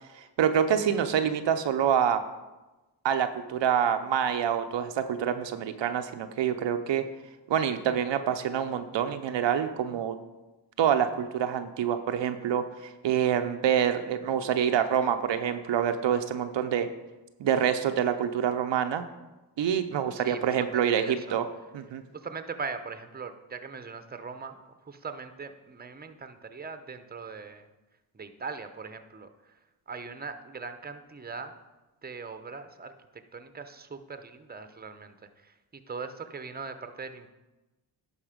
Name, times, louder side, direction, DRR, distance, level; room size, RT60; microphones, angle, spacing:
voice 1, 0.2-2.2 3.0-7.0 7.5-10.2 10.8-16.9 17.4-19.0 19.6-21.4 21.7-22.0, right 8 dB, 70° right, 8 dB, 0.7 m, -26 dB
voice 2, 20.1-21.4 22.1-27.7 28.1-29.5 29.9-31.5 32.0-37.3, right 4 dB, 20° right, 9 dB, 0.8 m, -40 dB
11.0 x 4.3 x 5.1 m, 1.1 s
cardioid pair, 50°, 46 cm